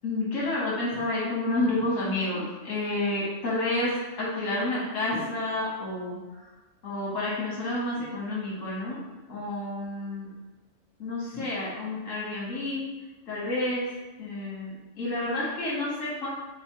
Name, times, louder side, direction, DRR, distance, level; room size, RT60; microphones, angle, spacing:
voice 1, 0.0-6.2 6.8-9.0 9.3-10.3 11.0-12.8 13.3-13.9 14.2-16.3, left 2 dB, 80° left, -7 dB, 1.4 m, -29 dB
4.1 x 2.0 x 4.4 m, 1.2 s
omnidirectional pair, 1.3 m